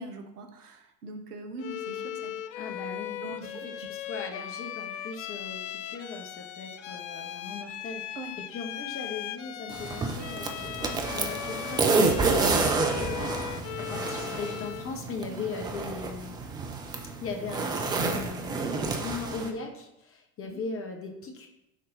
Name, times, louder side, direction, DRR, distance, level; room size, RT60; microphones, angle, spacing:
voice 1, 0.0-2.3 3.2-3.7 8.1-8.4 15.3-15.5 20.4-20.6, right 2 dB, 65° right, 5 dB, 1.1 m, -42 dB
Bowed string instrument, 1.6-15.0, left 11 dB, 45° left, 0.6 m, -38 dB
voice 2, 2.6-16.4 17.1-21.5, left 4 dB, 25° left, 3 dB, 1.3 m, -39 dB
sound 1, 9.7-19.5, right 3 dB, 10° right, 0.4 m, -29 dB
9.6 x 3.8 x 3.9 m, 0.89 s
figure-of-eight pair, 75°, 49 cm